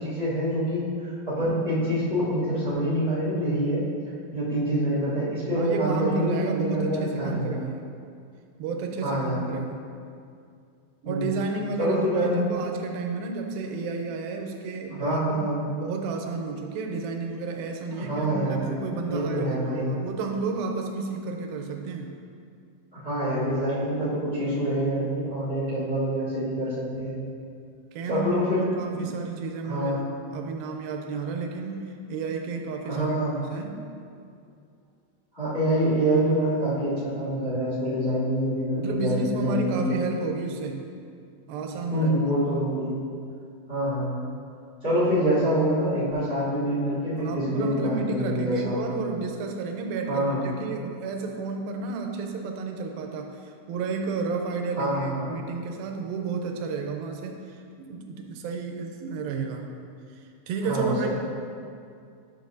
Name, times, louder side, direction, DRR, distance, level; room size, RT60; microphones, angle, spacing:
voice 1, 0.0-3.8 4.3-7.6 9.0-9.4 11.0-11.3 11.8-12.4 15.0-15.7 17.9-19.9 22.9-27.2 28.1-28.6 28.9-29.1 29.6-30.0 32.9-33.4 35.3-39.9 41.9-43.0 43.7-44.1 44.8-49.0 50.1-50.5 54.8-55.3 60.6-61.1, right 1 dB, 25° left, -10 dB, 1.2 m, -26 dB
voice 2, 5.5-7.9 8.6-9.9 11.0-22.2 27.9-30.0 30.3-31.8 32.1-33.2 33.5-33.8 38.7-40.9 41.5-42.3 47.2-59.8 60.1-61.1, right 4 dB, 80° right, 2 dB, 2.3 m, -32 dB
11.0 x 6.7 x 2.7 m, 2.3 s
omnidirectional pair, 4.6 m